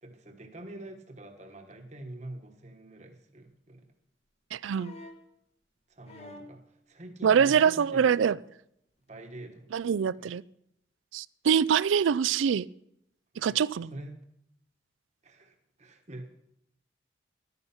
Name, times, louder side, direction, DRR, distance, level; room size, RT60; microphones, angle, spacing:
voice 1, 0.0-3.9 5.9-8.3 9.1-9.7 10.0-10.3 13.3-13.6 13.9-14.2 15.2-16.4, right 1 dB, 35° right, 5 dB, 1.2 m, -45 dB
voice 2, 4.5-4.9 7.2-8.4 9.7-10.4 11.1-12.6 13.4-13.9, right 7 dB, 80° right, 20 dB, 0.4 m, -24 dB
sound 1, 4.7-5.3 6.1-6.6 7.4-7.9 9.1-9.2, left 1 dB, 30° left, 1.0 m, -48 dB
11.0 x 9.8 x 5.8 m, 0.76 s
head